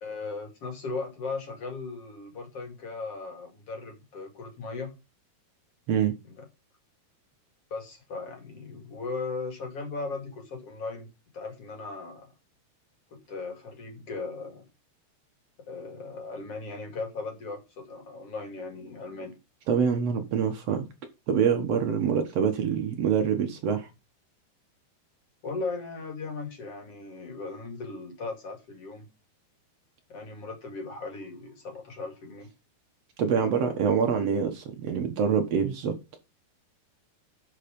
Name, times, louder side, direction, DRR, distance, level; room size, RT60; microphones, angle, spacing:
voice 1, 0.0-4.9 6.2-6.4 7.7-11.1 11.3-12.3 13.1-14.7 15.7-19.4 25.4-29.1 30.1-32.5 33.3-33.5, left 3 dB, 40° left, 2.8 m, -37 dB
voice 2, 19.7-20.9 21.3-23.9 33.2-36.0, right 7 dB, 75° right, 1.4 m, -25 dB
11.5 x 4.9 x 5.2 m
omnidirectional pair, 4.8 m